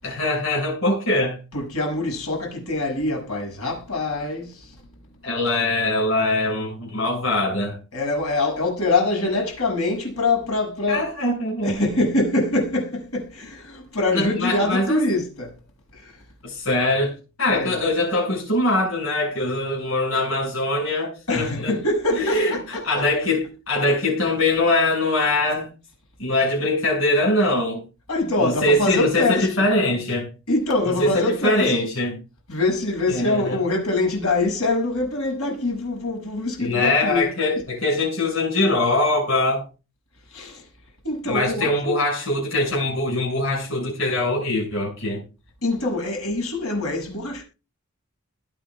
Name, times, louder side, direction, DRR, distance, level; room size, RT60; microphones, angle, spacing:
voice 1, 0.0-1.4 5.2-7.8 10.9-11.8 14.1-15.0 16.4-21.7 22.1-25.7 26.2-27.8 28.4-30.3 31.0-32.2 33.1-33.6 36.6-39.6 41.2-45.2, left 2 dB, 70° left, 7.2 m, -22 dB
voice 2, 1.5-4.8 7.9-11.1 11.6-15.6 15.9-16.2 17.5-17.8 21.3-23.0 28.1-29.6 30.5-31.8 32.5-37.3 40.3-40.7 41.0-42.0 45.6-47.4, left 2 dB, 85° left, 7.5 m, -24 dB
22.0 x 9.0 x 2.4 m
head